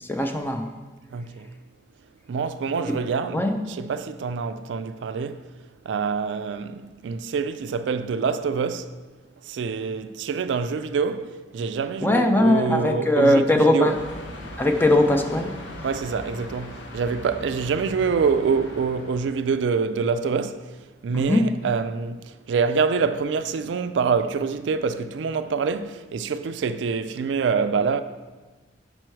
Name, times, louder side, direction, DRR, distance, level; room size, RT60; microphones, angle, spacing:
voice 1, 0.1-0.7 2.9-3.0 3.3-3.5 12.0-13.9 14.6-15.5 21.1-21.4, left 1 dB, 10° left, 0.5 m, -20 dB
voice 2, 1.1-1.5 2.3-5.4 5.9-8.9 9.5-14.0 15.8-20.6 21.0-28.0, right 5 dB, 80° right, 0.3 m, -26 dB
sound 1, 13.9-19.5, left 1 dB, 90° left, 0.9 m, -39 dB
6.1 x 5.3 x 4.5 m
head